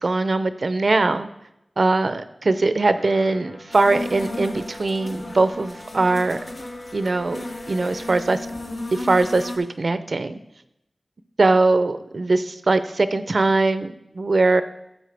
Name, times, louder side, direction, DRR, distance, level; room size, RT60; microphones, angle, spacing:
voice 1, 0.0-1.3 1.8-6.4 6.9-7.4 7.7-8.5 8.9-10.4 11.4-14.6, right 3 dB, 70° right, 11 dB, 0.5 m, -21 dB
sound 1, 2.9-8.1, left 1 dB, 55° left, 1.5 m, -42 dB
sound 2, 3.7-9.6, left 1 dB, 80° left, 1.9 m, -34 dB
14.0 x 7.3 x 3.4 m, 0.85 s
wide cardioid pair, 55°, 0 cm